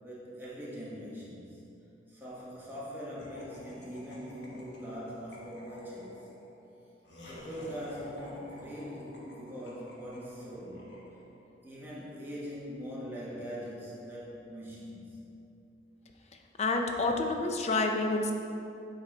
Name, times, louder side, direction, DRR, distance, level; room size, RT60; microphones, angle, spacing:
voice 1, 0.0-1.6 2.1-6.3 7.3-10.9 11.6-15.2, equal, 10° right, -7 dB, 1.2 m, -42 dB
Laughter, 3.2-11.6, left 1 dB, 65° left, 1.2 m, -51 dB
voice 2, 16.6-18.3, left 3 dB, 35° left, 3 dB, 0.5 m, -28 dB
8.8 x 3.7 x 4.4 m, 2.8 s
head